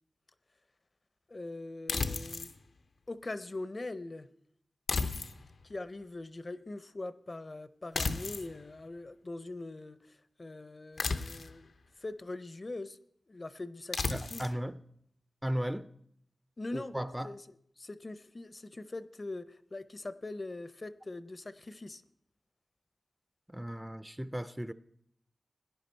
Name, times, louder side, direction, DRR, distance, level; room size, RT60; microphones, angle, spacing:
voice 1, 1.3-2.5 3.1-4.3 5.6-13.0 13.3-14.5 16.6-16.9 17.2-17.4 17.8-22.0, left 2 dB, 40° left, 0.6 m, -42 dB
sound 1, 1.9-2.5 4.9-5.6 7.9-8.5 11.0-11.6 13.9-14.5, left 4 dB, 85° left, 0.7 m, -33 dB
voice 2, 14.1-14.8 15.4-15.9 16.7-17.3 23.5-24.7, equal, 10° right, 0.4 m, -36 dB
17.0 x 10.5 x 4.4 m
wide cardioid pair, 70°, 0 cm